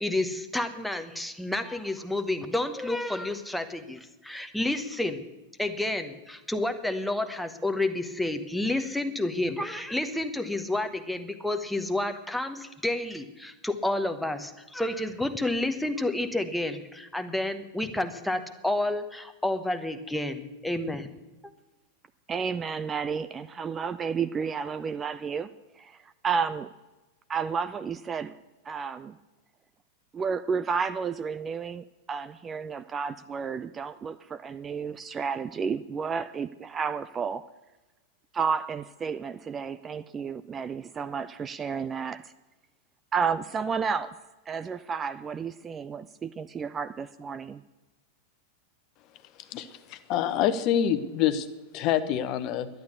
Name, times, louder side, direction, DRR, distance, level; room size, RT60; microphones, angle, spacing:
voice 1, 0.0-5.2 5.6-21.1, left 1 dB, ahead, 7 dB, 1.1 m, -30 dB
voice 2, 22.3-25.5 25.8-26.7 27.3-28.3 28.7-29.2 30.1-37.4 38.3-42.3 43.1-44.2 44.5-47.6, right 6 dB, 20° right, 13 dB, 0.4 m, -31 dB
voice 3, 49.5-51.5 51.7-52.7, left 10 dB, 40° left, 11 dB, 1.0 m, -26 dB
11.5 x 10.5 x 8.2 m, 1.1 s
figure-of-eight pair, 90°, 0 cm